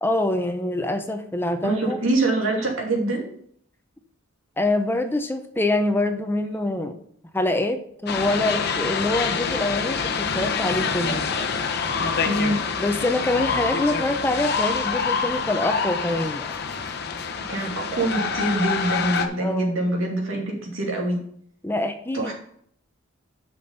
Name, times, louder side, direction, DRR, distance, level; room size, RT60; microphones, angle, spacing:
voice 1, 0.0-2.0 4.6-7.0 7.3-11.3 12.8-16.5 19.4-19.7 21.6-22.3, left 2 dB, 10° left, 7 dB, 0.6 m, -25 dB
voice 2, 1.6-3.2 12.2-12.6 17.5-21.2 22.1-22.3, right 2 dB, 80° right, 0 dB, 2.6 m, -24 dB
sound 1, 8.1-19.3, left 5 dB, 55° left, 0.9 m, -26 dB
7.0 x 6.1 x 5.4 m, 0.63 s
head